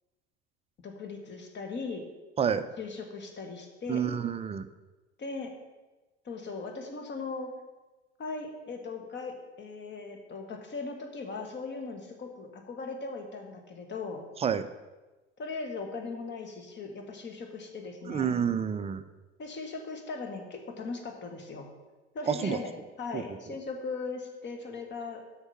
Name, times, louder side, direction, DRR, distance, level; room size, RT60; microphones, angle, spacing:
voice 1, 0.8-2.0 2.8-4.0 5.2-5.5 6.2-7.5 8.2-14.2 15.4-18.4 19.4-21.7 22.1-25.2, left 4 dB, 35° left, 4 dB, 1.6 m, -39 dB
voice 2, 3.9-4.7 14.4-14.7 18.1-19.0 22.3-22.6 23.1-23.2, right 7 dB, 20° right, 12 dB, 0.4 m, -28 dB
8.0 x 6.0 x 5.6 m, 1.2 s
figure-of-eight pair, 70°, 33 cm